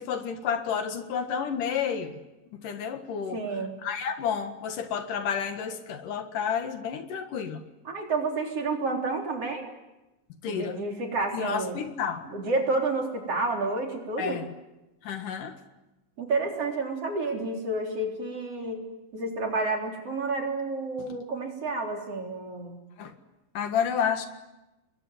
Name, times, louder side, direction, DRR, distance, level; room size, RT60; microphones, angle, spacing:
voice 1, 0.0-2.2 2.5-3.4 3.8-7.6 10.4-10.8 11.3-12.3 14.2-14.5 15.0-15.5 21.1-21.2 23.0-23.1 23.5-24.3, left 7 dB, 75° left, 7 dB, 3.3 m, -30 dB
voice 2, 3.3-3.8 7.9-9.7 10.5-11.8 12.3-14.4 16.2-18.9 19.1-22.8, right 3 dB, 45° right, 2 dB, 4.6 m, -30 dB
29.0 x 22.0 x 9.4 m, 1.0 s
omnidirectional pair, 3.9 m